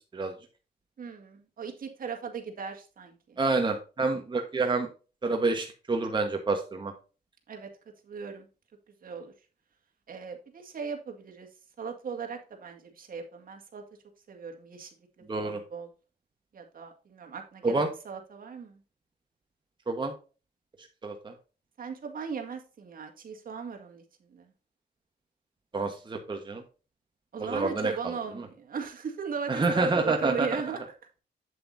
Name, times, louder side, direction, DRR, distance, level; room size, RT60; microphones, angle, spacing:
voice 1, 1.0-3.4 7.5-7.7 8.0-8.5 9.0-9.3 10.1-11.5 11.8-13.8 14.3-14.9 15.3-15.9 16.5-18.8 21.8-24.0 24.3-24.5 27.3-30.9, right 6 dB, 55° right, 3 dB, 2.0 m, -38 dB
voice 2, 3.4-4.9 5.2-6.9 15.3-15.6 17.6-17.9 19.9-20.1 21.0-21.3 25.7-26.6 27.4-28.1 29.5-30.6, right 3 dB, 25° right, 3 dB, 1.3 m, -28 dB
8.2 x 7.8 x 2.6 m, 0.33 s
cardioid pair, 110°, 17 cm